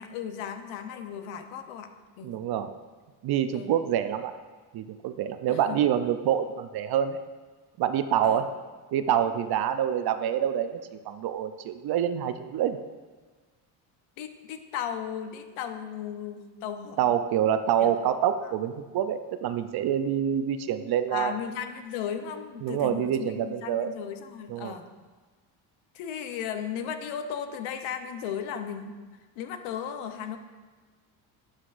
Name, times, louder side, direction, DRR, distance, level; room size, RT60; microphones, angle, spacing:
voice 1, 0.0-1.9 2.2-2.4 3.5-3.8 5.5-5.8 8.2-8.4 14.2-17.0 17.8-17.9 18.4-18.5 21.1-24.9 25.9-28.9 29.4-30.4, left 8 dB, 70° left, 8 dB, 0.9 m, -36 dB
voice 2, 2.2-2.7 3.2-4.4 4.7-7.2 7.8-8.5 8.9-12.8 17.0-21.3 22.6-23.9 24.5-24.7, right 9 dB, 50° right, 10 dB, 0.6 m, -26 dB
11.0 x 5.7 x 2.5 m, 1.4 s
supercardioid pair, 90°, 49 cm